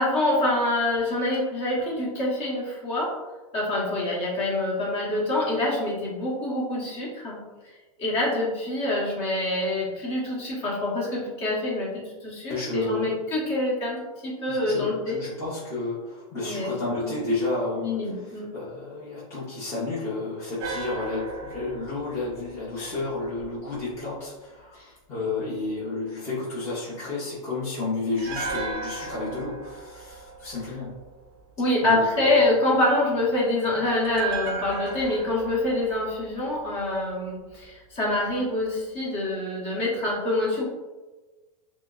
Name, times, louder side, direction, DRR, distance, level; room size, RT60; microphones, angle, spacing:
voice 1, 0.0-3.1 3.5-7.4 8.0-15.2 16.3-17.2 17.8-18.5 31.6-40.7, left 1 dB, 35° left, -4 dB, 1.1 m, -26 dB
voice 2, 12.5-13.1 14.5-18.0 18.5-30.9 31.8-32.5, left 3 dB, 15° left, -10 dB, 0.8 m, -31 dB
sound 1, 20.6-23.8 28.2-31.4 34.0-37.3 37.5-37.7, right 4 dB, 35° right, 0.5 m, -36 dB
5.9 x 2.0 x 2.4 m, 1.2 s
supercardioid pair, 165°, 19 cm